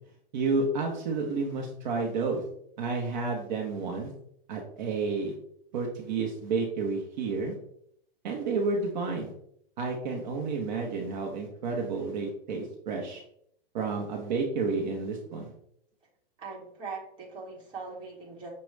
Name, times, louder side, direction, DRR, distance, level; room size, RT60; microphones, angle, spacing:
voice 1, 0.3-2.4 2.8-4.1 4.5-5.3 5.7-7.5 8.2-9.3 9.8-13.2 13.7-15.5, right 4 dB, 50° right, 0 dB, 0.8 m, -30 dB
voice 2, 16.4-18.5, right 4 dB, 15° right, -4 dB, 1.2 m, -41 dB
6.2 x 2.2 x 3.2 m, 0.70 s
hypercardioid pair, 155°, 30 cm